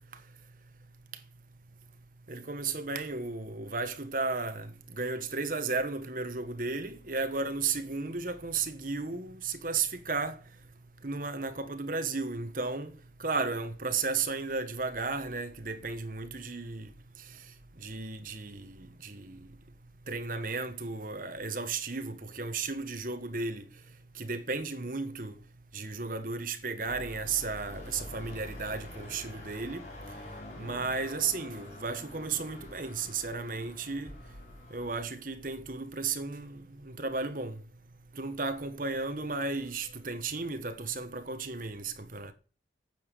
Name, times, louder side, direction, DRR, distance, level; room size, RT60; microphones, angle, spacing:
voice 1, 2.3-4.7 5.0-10.4 11.0-12.9 13.2-16.9 17.8-18.8 19.0-19.4 20.1-23.6 24.2-25.3 25.7-29.8 30.6-34.1 34.7-36.6 36.8-37.6 38.2-42.3, right 4 dB, 50° right, 1.3 m, -34 dB
sound 1, 26.8-35.1, left 1 dB, 45° left, 4.2 m, -46 dB
9.2 x 7.2 x 8.4 m
head